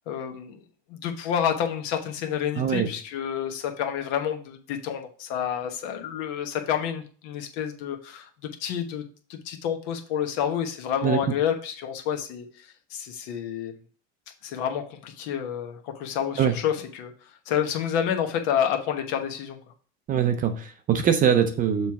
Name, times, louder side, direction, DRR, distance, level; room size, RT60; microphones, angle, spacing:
voice 1, 0.1-0.6 0.9-8.3 8.6-9.0 9.3-12.5 12.9-13.7 14.4-17.1 17.5-19.6, left 9 dB, 60° left, 5 dB, 1.2 m, -29 dB
voice 2, 2.6-2.9 11.0-11.2 16.4-16.5 20.1-21.9, right 8 dB, 25° right, 8 dB, 0.5 m, -22 dB
6.8 x 3.1 x 5.7 m, 0.42 s
cardioid pair, 155°, 34 cm